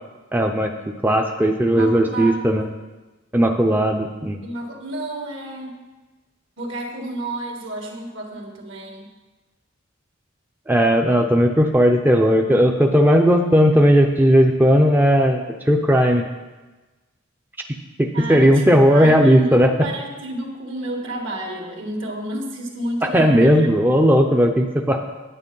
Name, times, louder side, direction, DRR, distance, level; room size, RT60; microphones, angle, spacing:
voice 1, 0.3-2.6 3.3-4.4 10.7-15.4 15.7-16.2 18.0-19.7 23.0-25.0, equal, 10° right, 2 dB, 0.5 m, -16 dB
voice 2, 1.7-2.5 4.4-5.9 6.6-9.1 18.1-23.7, right 1 dB, 65° right, 1 dB, 2.0 m, -31 dB
9.8 x 9.0 x 5.4 m, 1.2 s
head